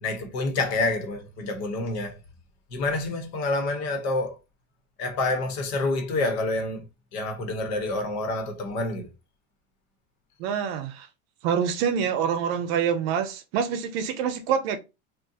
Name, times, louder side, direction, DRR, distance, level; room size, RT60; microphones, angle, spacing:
voice 1, 0.0-2.2 2.7-4.4 5.0-9.1, left 2 dB, 80° left, 1.2 m, -28 dB
voice 2, 10.4-11.1 11.4-14.8, right 7 dB, 65° right, 0.6 m, -26 dB
3.7 x 2.5 x 2.7 m
cardioid pair, 165°, 32 cm